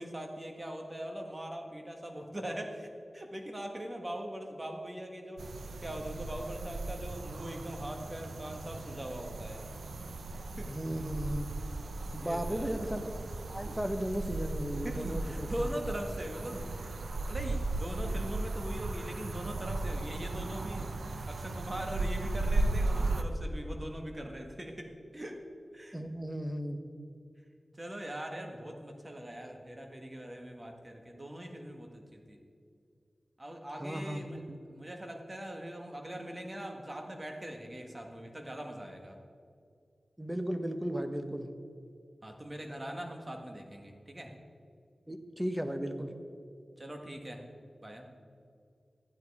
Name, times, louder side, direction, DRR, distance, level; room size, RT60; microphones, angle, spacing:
voice 1, 0.0-5.4 5.8-9.6 10.6-10.7 12.2-12.8 14.8-25.4 25.7-26.0 27.7-32.4 33.4-39.2 42.2-44.3 46.8-47.4 47.8-48.1, right 1 dB, 25° right, 3 dB, 1.6 m, -41 dB
sound 1, 5.4-23.2, right 2 dB, 90° right, 0.7 m, -36 dB
voice 2, 10.7-11.5 12.1-13.2 13.5-15.5 25.9-26.8 33.8-34.4 40.2-41.5 45.1-46.1, equal, 10° right, 7 dB, 1.0 m, -35 dB
13.5 x 9.5 x 4.8 m, 2.4 s
wide cardioid pair, 75°, 0 cm